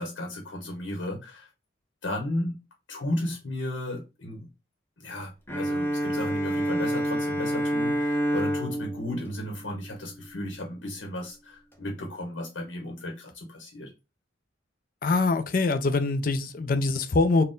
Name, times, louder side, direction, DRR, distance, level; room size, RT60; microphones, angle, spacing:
voice 1, 0.0-1.5 2.0-2.6 2.9-4.5 5.0-13.9, left 1 dB, 90° left, 0.9 m, -34 dB
Bowed string instrument, 5.5-10.4, equal, 10° left, 0.7 m, -28 dB
voice 2, 15.0-17.4, left 3 dB, 50° left, 0.4 m, -24 dB
4.1 x 2.2 x 3.7 m
head